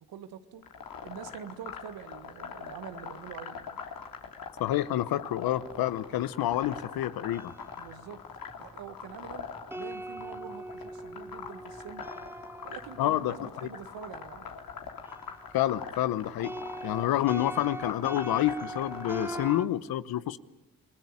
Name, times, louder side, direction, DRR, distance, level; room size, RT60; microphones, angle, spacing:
voice 1, 0.1-0.6 1.0-3.8 7.8-8.2 8.6-12.0 12.6-14.5, right 8 dB, 85° right, 1.7 m, -45 dB
sound 1, 0.6-19.5, left 6 dB, 70° left, 3.1 m, -43 dB
voice 2, 4.6-7.5 13.0-13.3 15.5-16.5 16.8-20.4, left 13 dB, 90° left, 1.0 m, -28 dB
sound 2, 5.7-15.8 16.1-19.7, right 1 dB, 5° right, 1.6 m, -42 dB
29.0 x 20.5 x 9.8 m
supercardioid pair, 55°, 35 cm